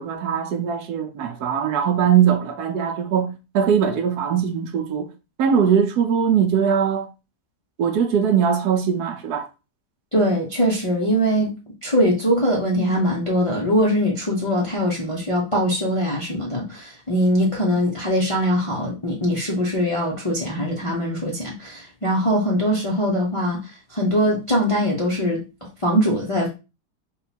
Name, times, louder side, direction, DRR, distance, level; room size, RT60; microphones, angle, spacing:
voice 1, 0.0-3.3 3.5-5.1 5.4-7.1 7.8-9.5, right 8 dB, 75° right, 1.1 m, -20 dB
voice 2, 10.1-25.4 25.8-26.5, equal, 35° left, 0.5 m, -22 dB
3.7 x 2.3 x 4.1 m
omnidirectional pair, 1.8 m